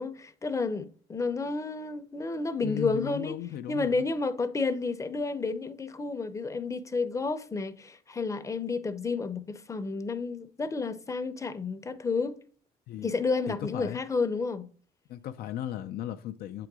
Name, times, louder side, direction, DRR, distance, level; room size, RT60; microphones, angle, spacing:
voice 1, 0.0-3.4 3.7-12.4 13.0-14.7, left 4 dB, 20° left, 0.6 m, -31 dB
voice 2, 2.6-4.0 12.9-13.1 13.5-14.0 15.1-16.7, left 11 dB, 65° left, 0.5 m, -36 dB
8.0 x 3.8 x 4.7 m
cardioid pair, 110°, 17 cm